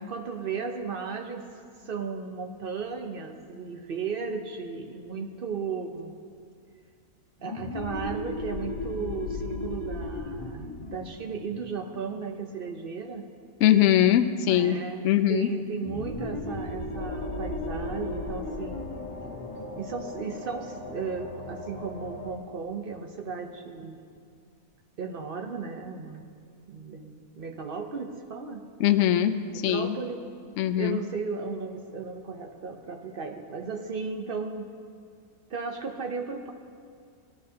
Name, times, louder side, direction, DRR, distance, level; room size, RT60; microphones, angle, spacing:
voice 1, 0.1-6.2 7.4-13.2 14.5-18.9 19.8-24.0 25.0-26.2 26.7-28.6 29.7-30.2 30.7-34.7 35.5-36.5, right 5 dB, 50° right, 4 dB, 0.7 m, -35 dB
sound 1, 7.4-12.7 15.7-21.0, left 2 dB, 20° left, 1.0 m, -36 dB
voice 2, 13.6-14.8 15.0-15.5 28.8-30.0 30.6-31.0, left 11 dB, 65° left, 9 dB, 0.8 m, -22 dB
sound 2, 16.9-22.3, left 3 dB, 50° left, 1.3 m, -41 dB
sound 3, 19.5-22.2, right 8 dB, 5° right, 2.3 m, -50 dB
18.0 x 11.5 x 2.8 m, 2.2 s
omnidirectional pair, 1.6 m